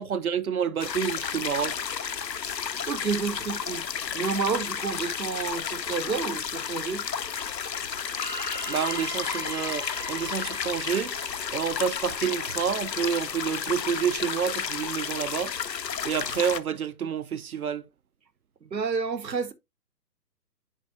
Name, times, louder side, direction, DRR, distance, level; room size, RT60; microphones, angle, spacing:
voice 1, 0.0-1.8 8.7-11.2 11.5-15.6 16.0-17.8, right 7 dB, 60° right, 0.6 m, -29 dB
sound 1, 0.8-16.6, left 7 dB, 90° left, 0.7 m, -32 dB
voice 2, 2.9-3.8 4.1-7.0 18.6-19.5, right 5 dB, 90° right, 0.9 m, -30 dB
sound 2, 8.2-12.2, equal, 30° left, 0.4 m, -38 dB
10.0 x 4.2 x 2.5 m
figure-of-eight pair, 135°, 49 cm